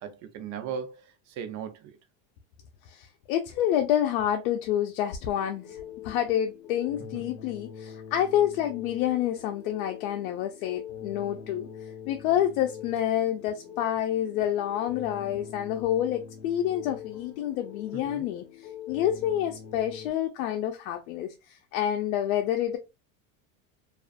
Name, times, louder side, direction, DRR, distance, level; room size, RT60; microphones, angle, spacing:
voice 1, 0.0-2.0 7.0-7.2 17.9-18.3, right 7 dB, 40° right, 0.5 m, -38 dB
voice 2, 2.9-11.7 12.1-22.8, left 11 dB, 80° left, 0.5 m, -28 dB
sound 1, 5.2-20.1, left 8 dB, 35° left, 1.2 m, -44 dB
2.4 x 2.4 x 2.4 m
supercardioid pair, 130°, 42 cm